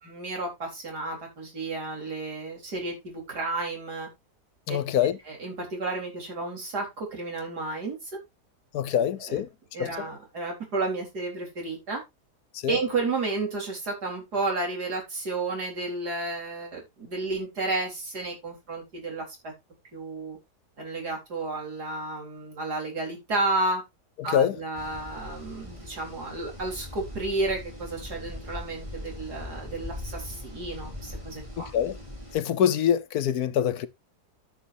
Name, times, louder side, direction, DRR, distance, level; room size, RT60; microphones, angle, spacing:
voice 1, 0.0-4.1 4.7-4.8 5.3-8.1 8.9-9.4 9.7-12.0 12.7-19.5 19.9-20.4 20.8-23.8 24.2-31.7, right 3 dB, 80° right, 4.7 m, -32 dB
voice 2, 4.7-5.2 8.7-9.5 9.8-10.0 12.5-12.8 24.2-24.6 31.6-32.0 32.3-33.9, left 9 dB, 75° left, 1.3 m, -25 dB
sound 1, 24.7-32.4, left 1 dB, 20° right, 4.2 m, -41 dB
13.5 x 7.1 x 2.7 m
omnidirectional pair, 1.7 m